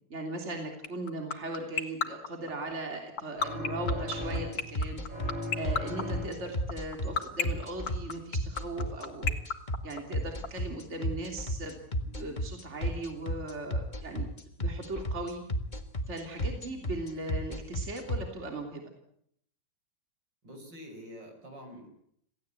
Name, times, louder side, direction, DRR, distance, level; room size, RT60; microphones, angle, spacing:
voice 1, 0.1-9.3 9.8-14.3 14.6-15.4 16.1-18.8, right 2 dB, 35° right, 3 dB, 3.4 m, -38 dB
sound 1, 0.8-10.5, left 6 dB, 50° left, 2.1 m, -29 dB
sound 2, 3.4-4.8 5.1-6.6, left 2 dB, 85° right, 6.5 m, -38 dB
sound 3, 3.9-18.2, equal, 25° left, 1.7 m, -32 dB
voice 2, 20.4-21.9, equal, 65° right, 5 dB, 6.4 m, -46 dB
27.0 x 17.5 x 8.4 m, 0.70 s
omnidirectional pair, 2.1 m